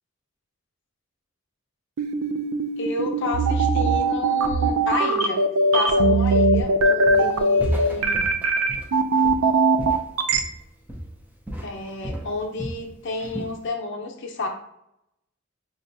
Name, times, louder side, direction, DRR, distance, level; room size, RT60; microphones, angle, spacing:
sound 1, 2.0-10.4, right 2 dB, 85° right, 0.4 m, -20 dB
voice 1, 2.8-5.4 5.7-8.2 11.6-14.5, left 3 dB, 60° left, 1 dB, 0.6 m, -30 dB
Walk footsteps, 7.1-7.3 7.6-10.6 10.9-11.2 11.5-12.9 13.2-13.6, right 1 dB, 10° right, 0.4 m, -32 dB
5.7 x 2.1 x 2.6 m, 0.81 s
head